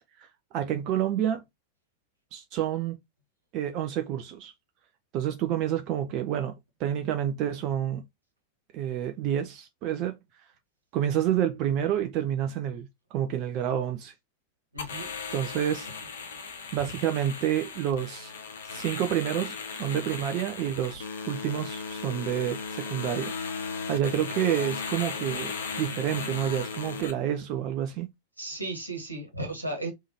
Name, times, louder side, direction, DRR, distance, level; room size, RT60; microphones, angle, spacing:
voice 1, 0.5-1.4 2.3-3.0 3.5-4.5 5.1-8.0 8.7-10.2 10.9-14.1 15.3-15.9 16.7-18.3 18.7-23.3 23.9-28.1, right 10 dB, 40° right, 0.5 m, -29 dB
voice 2, 14.7-15.1 28.4-29.9, right 2 dB, 85° right, 1.4 m, -35 dB
sound 1, 14.8-27.1, left 5 dB, 65° left, 0.8 m, -36 dB
3.6 x 3.3 x 2.7 m
figure-of-eight pair, 90°, 0 cm